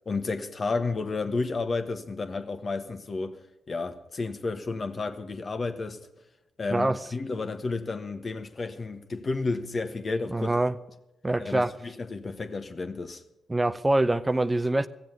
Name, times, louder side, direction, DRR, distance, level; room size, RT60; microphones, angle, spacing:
voice 1, 0.0-3.4 3.7-6.0 6.6-10.5 11.4-13.2, left 3 dB, 45° left, 1.3 m, -31 dB
voice 2, 10.3-10.7 11.2-11.7 13.5-14.9, right 2 dB, 20° right, 0.6 m, -24 dB
15.5 x 7.5 x 9.2 m
hypercardioid pair, 45°, 0 cm